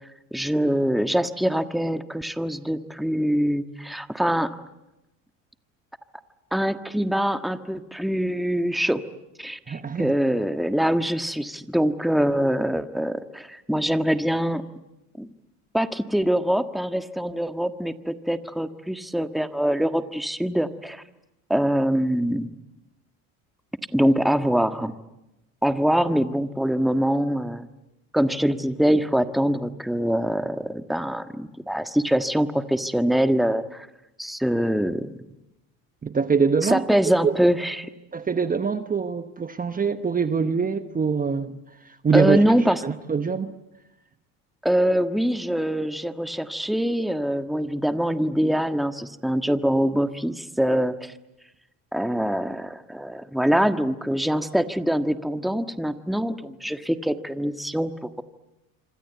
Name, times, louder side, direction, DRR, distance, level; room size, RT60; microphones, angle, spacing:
voice 1, 0.3-4.5 6.5-9.0 9.4-14.6 15.2-15.3 15.7-21.0 21.5-22.5 23.9-24.9 25.6-27.7 28.1-33.9 34.2-35.1 36.6-37.9 42.1-42.8 44.6-51.1 51.9-58.2, equal, ahead, 1.5 m, -24 dB
voice 2, 9.7-10.1 36.0-36.8 37.2-37.3 38.1-41.6 41.8-42.4 42.8-43.5, right 5 dB, 20° right, 1.2 m, -24 dB
26.5 x 26.0 x 8.2 m
supercardioid pair, 85°, 37 cm